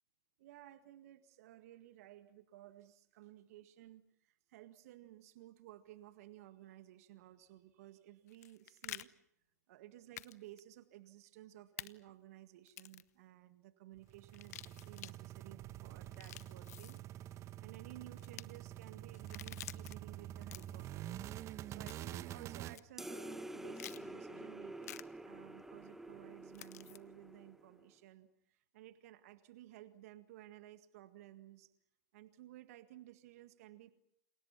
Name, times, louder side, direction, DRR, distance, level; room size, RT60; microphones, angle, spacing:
voice 1, 0.4-9.1 9.7-17.0 17.6-21.1 21.7-31.7 32.1-33.9, right 14 dB, 60° right, 10 dB, 1.8 m, -56 dB
sound 1, 8.3-9.0 10.2-10.3 10.6-10.7 11.8-11.9 12.7-13.1 14.3-15.1 16.0-17.0 18.2-18.4 19.1-19.9 20.4-20.9 21.9-22.2 22.7-22.8 23.8-24.0 24.8-25.0 26.5-27.0, left 13 dB, 65° left, 1.0 m, -49 dB
sound 2, 14.0-22.8, right 12 dB, 35° right, 1.2 m, -47 dB
sound 3, 23.0-27.9, right 1 dB, 5° right, 1.7 m, -48 dB
29.5 x 28.0 x 5.8 m, 0.76 s
hypercardioid pair, 105°, 9 cm